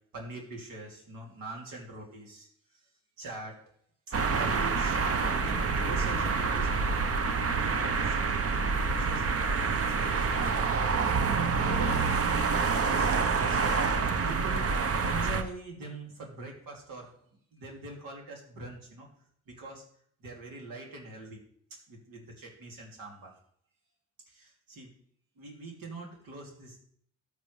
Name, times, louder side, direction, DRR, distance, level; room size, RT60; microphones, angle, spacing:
voice 1, 0.1-2.9 3.2-3.6 4.3-14.7 15.0-19.1 19.5-19.8 20.2-21.4 21.9-23.4 24.3-24.9 25.4-26.8, right 2 dB, 75° right, 0 dB, 2.9 m, -43 dB
sound 1, 4.1-15.4, right 4 dB, 45° right, 0.9 m, -27 dB
13.5 x 6.7 x 3.3 m, 0.62 s
cardioid pair, 80°, 34 cm